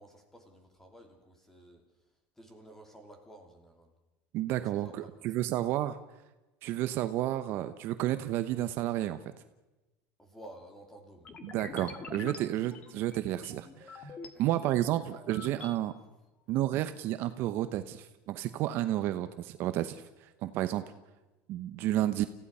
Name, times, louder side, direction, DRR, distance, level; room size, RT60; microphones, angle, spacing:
voice 1, 0.0-1.8 2.4-3.9 4.8-5.3 10.2-11.4 14.2-14.4, right 1 dB, 5° left, 4 dB, 3.0 m, -53 dB
voice 2, 4.3-6.0 6.6-9.2 11.4-14.1 14.4-15.9 16.5-20.0 20.4-20.8 21.5-22.3, right 13 dB, 45° right, 11 dB, 0.9 m, -31 dB
sound 1, 11.2-14.3 14.8-15.8, left 4 dB, 25° left, 1.7 m, -46 dB
30.0 x 16.0 x 5.5 m, 1.0 s
cardioid pair, 160°, 5 cm